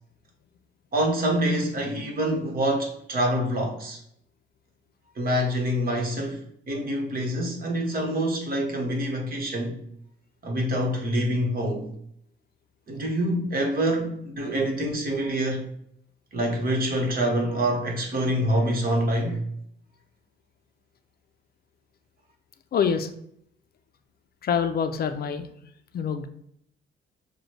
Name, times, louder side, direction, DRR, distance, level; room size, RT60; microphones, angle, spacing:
voice 1, 0.9-4.0 5.2-6.4 6.7-9.8 10.4-11.9 12.9-15.7 16.3-19.4, right 1 dB, 45° right, 1.3 m, -26 dB
voice 2, 22.7-23.1 24.4-25.5 25.9-26.3, left 7 dB, 50° left, 0.5 m, -25 dB
6.2 x 2.3 x 3.1 m
cardioid pair, 90°, 20 cm